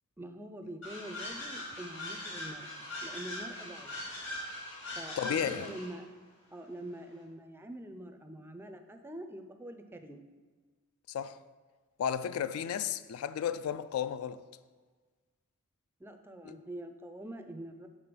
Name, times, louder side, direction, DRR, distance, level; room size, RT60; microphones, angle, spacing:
voice 1, 0.2-3.9 4.9-6.1 6.5-10.2 16.0-17.9, right 1 dB, 10° right, 0.4 m, -45 dB
sound 1, 0.8-6.0, left 1 dB, 60° left, 2.0 m, -41 dB
voice 2, 5.2-5.7 11.1-11.4 12.0-14.4 16.5-16.6, left 8 dB, 75° left, 0.3 m, -33 dB
6.8 x 3.7 x 5.9 m
head